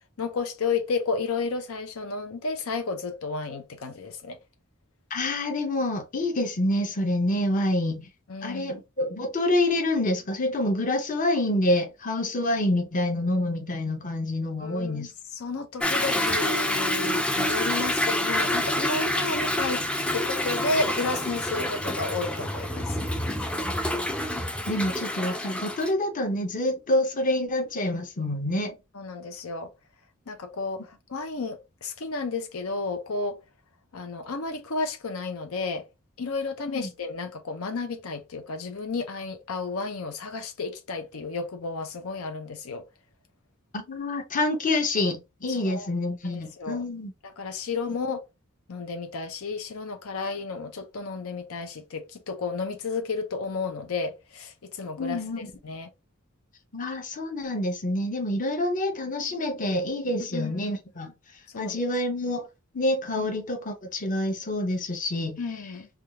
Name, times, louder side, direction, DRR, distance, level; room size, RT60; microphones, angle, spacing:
voice 1, 0.2-4.4 8.3-8.8 14.6-19.8 20.1-23.0 28.9-29.7 30.3-33.4 33.9-35.9 36.2-42.8 45.5-45.9 46.2-46.8 47.2-48.2 48.7-55.9 60.3-60.7 61.5-61.9 63.2-63.3 65.4-65.9, left 4 dB, 80° left, 0.6 m, -32 dB
voice 2, 5.1-8.1 8.4-15.1 24.7-28.7 36.7-36.9 43.7-47.1 55.0-55.5 56.7-61.1 61.6-62.5 62.7-65.4, left 1 dB, 40° left, 0.8 m, -27 dB
Toilet flush / Drip / Trickle dribble, 15.8-25.9, left 1 dB, 5° left, 0.4 m, -27 dB
3.5 x 2.3 x 2.9 m
head